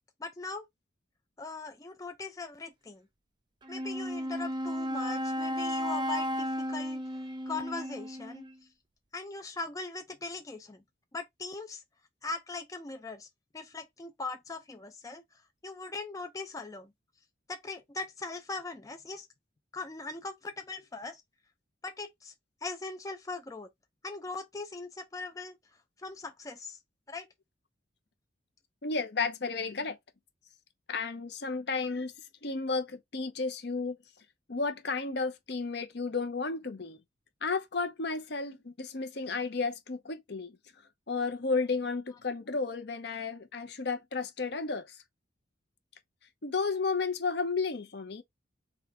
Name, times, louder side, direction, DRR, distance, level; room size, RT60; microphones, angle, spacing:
voice 1, 0.2-0.7 1.4-3.1 3.7-8.5 9.1-10.8 11.1-11.8 12.2-13.3 13.5-16.9 17.5-19.3 19.7-21.2 21.8-22.3 22.6-23.7 24.0-25.6 26.0-26.8 27.1-27.3, left 3 dB, 15° left, 0.4 m, -40 dB
Wind instrument woodwind instrument, 3.6-8.6, equal, 25° right, 0.8 m, -34 dB
voice 2, 28.8-30.0 30.9-32.1 32.4-34.0 34.5-37.0 37.4-40.5 41.1-45.0 46.4-48.2, left 4 dB, 60° left, 0.8 m, -32 dB
3.7 x 3.1 x 4.5 m
head